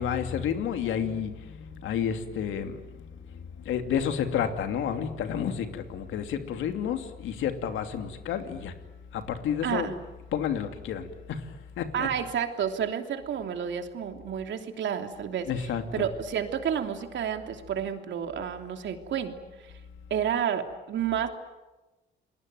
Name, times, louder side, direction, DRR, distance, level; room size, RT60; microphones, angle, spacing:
voice 1, 0.0-8.7 9.1-9.9 10.3-11.5 11.8-12.1 15.5-16.1, left 8 dB, 85° left, 7 dB, 2.7 m, -31 dB
voice 2, 9.6-9.9 11.9-15.5 15.9-19.4 19.6-19.7 20.1-21.3, right 8 dB, 70° right, 6 dB, 3.1 m, -30 dB
29.5 x 21.0 x 9.3 m, 1.1 s
cardioid pair, 90°, 20 cm